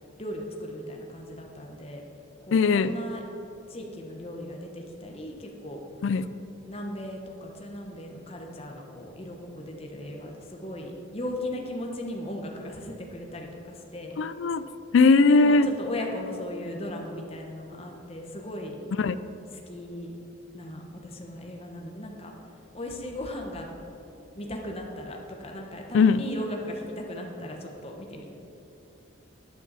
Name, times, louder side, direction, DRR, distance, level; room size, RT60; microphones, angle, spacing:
voice 1, 0.2-2.0 2.5-3.2 3.7-5.8 6.6-14.2 15.3-18.8 19.7-20.2 20.5-22.3 22.7-23.7 24.3-28.3, left 1 dB, 30° left, 1 dB, 1.1 m, -37 dB
voice 2, 2.5-2.9 6.0-6.3 14.2-14.6 14.9-15.7 19.0-19.1 25.9-26.2, left 4 dB, 70° left, 13 dB, 0.4 m, -19 dB
12.5 x 8.7 x 4.1 m, 3.0 s
head